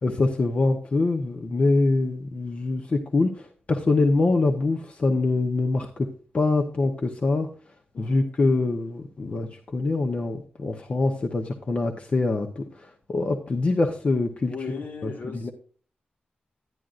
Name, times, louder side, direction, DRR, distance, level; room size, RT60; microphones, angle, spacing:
voice 1, 0.0-6.1 6.3-7.5 8.0-14.5 15.0-15.5, left 3 dB, 45° left, 0.9 m, -24 dB
voice 2, 7.9-8.3 14.5-15.5, left 4 dB, 70° left, 1.7 m, -36 dB
11.0 x 10.0 x 2.5 m
wide cardioid pair, 165°, 3 cm